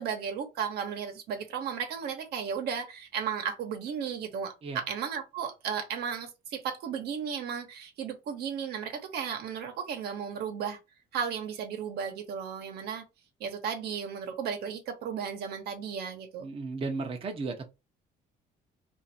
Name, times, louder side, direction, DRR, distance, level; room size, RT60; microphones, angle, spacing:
voice 1, 0.0-10.8 11.1-13.0 13.4-16.5, right 7 dB, 75° right, 1.0 m, -34 dB
voice 2, 16.4-17.7, right 3 dB, 35° right, 0.7 m, -34 dB
2.6 x 2.5 x 4.2 m
cardioid pair, 110°, 17 cm